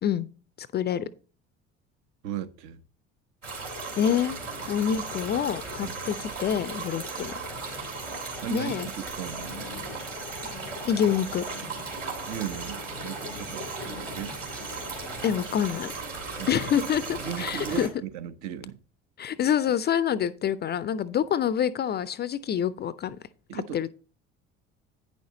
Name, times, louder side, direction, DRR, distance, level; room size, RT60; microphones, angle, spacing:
voice 1, 0.6-1.1 4.0-4.4 4.7-7.3 8.5-8.9 10.8-11.4 15.2-15.9 16.5-17.9 19.2-23.2 23.5-23.9, left 9 dB, 30° left, 0.4 m, -27 dB
voice 2, 2.2-2.8 5.8-6.0 8.4-9.5 12.3-13.7 14.0-14.4 16.4-16.5 17.2-18.8 23.5-23.8, right 10 dB, 55° right, 0.9 m, -36 dB
sound 1, 3.4-17.9, right 3 dB, 80° right, 2.7 m, -36 dB
9.3 x 6.2 x 3.9 m
figure-of-eight pair, 55°, 37 cm